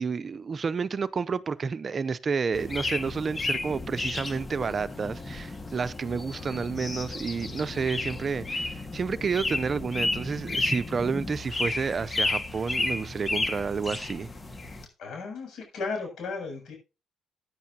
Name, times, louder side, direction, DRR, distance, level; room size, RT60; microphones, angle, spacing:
voice 1, 0.0-14.3, right 5 dB, 45° right, 0.6 m, -30 dB
sound 1, 2.5-14.9, left 2 dB, 30° left, 1.8 m, -32 dB
voice 2, 15.0-16.7, left 4 dB, 75° left, 7.4 m, -35 dB
16.0 x 9.5 x 2.9 m
cardioid pair, 80°, 0 cm